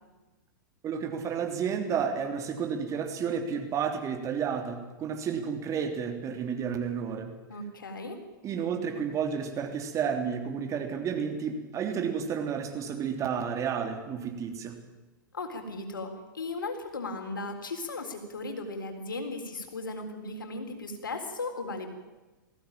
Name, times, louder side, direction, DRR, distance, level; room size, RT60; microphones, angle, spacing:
voice 1, 0.8-7.3 8.4-14.8, right 7 dB, 30° right, 5 dB, 3.3 m, -31 dB
voice 2, 7.5-8.2 15.3-21.9, left 3 dB, 80° left, 5 dB, 3.9 m, -36 dB
20.0 x 16.0 x 9.0 m, 1.2 s
hypercardioid pair, 105°, 11 cm